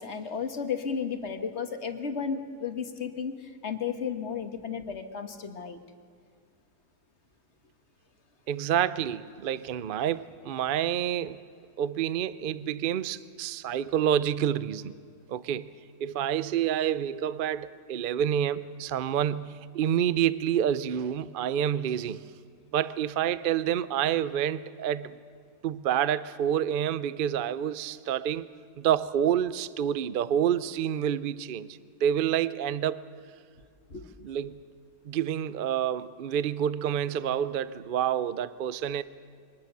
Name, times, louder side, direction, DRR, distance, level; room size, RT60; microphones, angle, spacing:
voice 1, 0.0-5.8 33.9-34.1, left 6 dB, 45° left, 1.5 m, -33 dB
voice 2, 8.5-11.4 11.8-14.9 15.3-15.7 16.0-22.2 22.7-25.2 25.6-28.5 28.8-31.7 32.0-33.1 34.2-34.6 35.1-39.0, right 9 dB, 60° right, 0.5 m, -28 dB
24.0 x 19.0 x 6.8 m
omnidirectional pair, 1.7 m